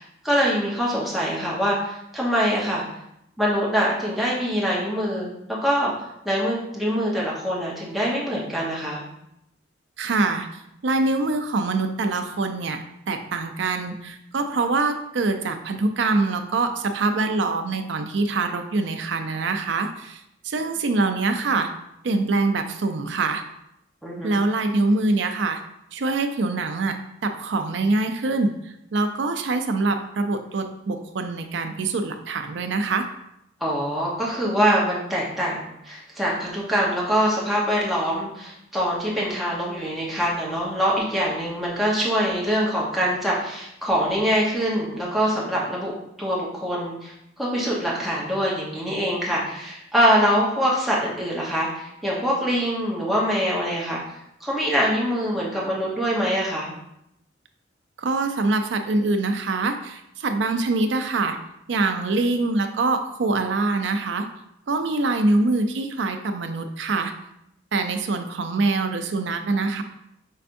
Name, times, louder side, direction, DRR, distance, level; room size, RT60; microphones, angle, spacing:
voice 1, 0.0-2.9 3.4-5.3 5.6-5.9 6.2-9.0 24.0-24.4 33.6-45.9 46.2-54.0 54.4-56.7, equal, ahead, -6 dB, 0.9 m, -24 dB
voice 2, 10.0-10.5 10.8-12.8 13.1-20.2 20.4-21.7 22.0-23.4 24.2-25.6 25.9-27.0 27.2-28.5 28.9-33.1 58.0-61.4 61.7-64.2 64.7-67.1 67.7-69.8, right 3 dB, 70° right, 6 dB, 0.4 m, -24 dB
5.5 x 3.4 x 2.6 m, 0.80 s
head